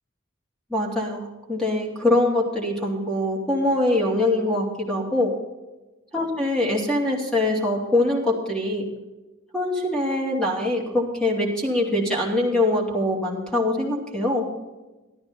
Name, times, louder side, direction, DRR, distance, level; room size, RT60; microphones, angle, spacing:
voice 1, 0.7-5.3 6.1-8.9 9.5-14.5, left 1 dB, 5° left, -2 dB, 2.6 m, -23 dB
13.0 x 12.0 x 4.3 m, 1.1 s
head